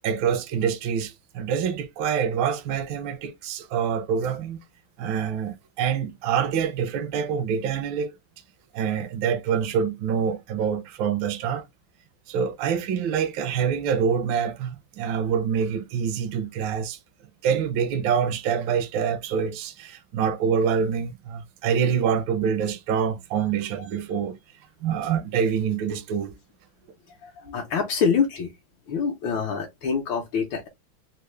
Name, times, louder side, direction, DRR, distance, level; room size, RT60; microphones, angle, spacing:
voice 1, 0.0-4.6 5.0-8.1 8.7-11.7 12.3-17.0 17.4-24.4 24.8-26.3, right 7 dB, 80° right, 1.3 m, -26 dB
voice 2, 27.2-28.5 28.9-30.7, left 6 dB, 80° left, 1.5 m, -25 dB
4.2 x 2.0 x 3.1 m
omnidirectional pair, 2.1 m